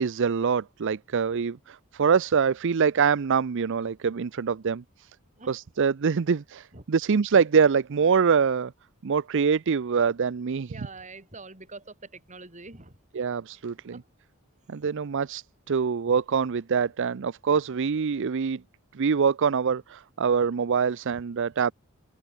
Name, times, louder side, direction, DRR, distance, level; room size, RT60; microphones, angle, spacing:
voice 1, 0.0-5.1 5.5-8.7 9.0-10.7 13.1-14.0 14.7-18.6 18.9-21.7, right 6 dB, 60° right, 0.5 m, -24 dB
voice 2, 10.7-13.0 13.9-14.0, right 3 dB, 35° right, 6.9 m, -44 dB
open air
head